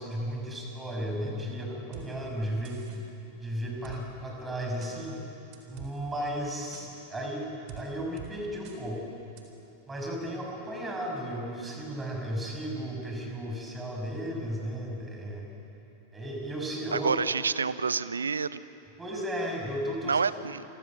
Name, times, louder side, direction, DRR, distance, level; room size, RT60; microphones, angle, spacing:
voice 1, 0.0-2.8 3.4-5.2 5.7-9.1 9.9-15.5 16.1-17.1 19.0-20.3, equal, 10° right, 0 dB, 6.5 m, -34 dB
sound 1, 1.9-2.1 2.6-3.0 3.8-4.0 4.8-4.9 5.5-5.9 6.7-6.9 7.7-7.8 8.2-8.3 8.6-8.8 9.4-9.5, right 10 dB, 45° right, 4.0 m, -44 dB
voice 2, 16.9-18.6 20.0-20.6, right 5 dB, 75° right, 16 dB, 0.7 m, -28 dB
28.5 x 24.0 x 7.5 m, 2.9 s
figure-of-eight pair, 90°, 0 cm